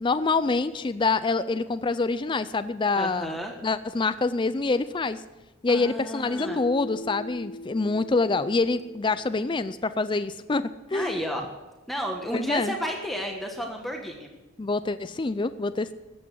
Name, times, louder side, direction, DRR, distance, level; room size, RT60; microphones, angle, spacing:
voice 1, 0.0-5.2 5.6-11.2 12.3-12.7 14.6-15.9, left 3 dB, 25° left, 12 dB, 0.4 m, -26 dB
voice 2, 3.0-3.5 5.7-6.6 10.9-11.4 11.9-14.3, equal, ahead, 1 dB, 1.3 m, -32 dB
Mallet percussion, 6.4-9.6, left 1 dB, 70° left, 1.1 m, -40 dB
14.0 x 8.5 x 7.7 m, 1.1 s
head